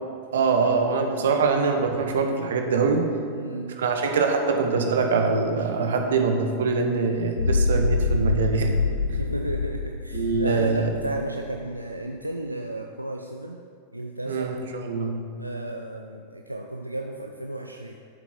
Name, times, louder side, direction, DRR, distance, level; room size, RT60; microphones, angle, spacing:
voice 1, 0.3-3.1 3.8-8.7 10.1-10.9 14.3-15.2, right 4 dB, 60° right, 4 dB, 1.1 m, -23 dB
voice 2, 3.3-3.8 8.8-13.6 13.9-14.5 15.4-17.9, right 1 dB, 85° right, 3 dB, 0.5 m, -33 dB
sound 1, 7.4-11.6, left 3 dB, 75° left, 0.4 m, -25 dB
12.0 x 7.4 x 4.4 m, 2.3 s
figure-of-eight pair, 90°, 0 cm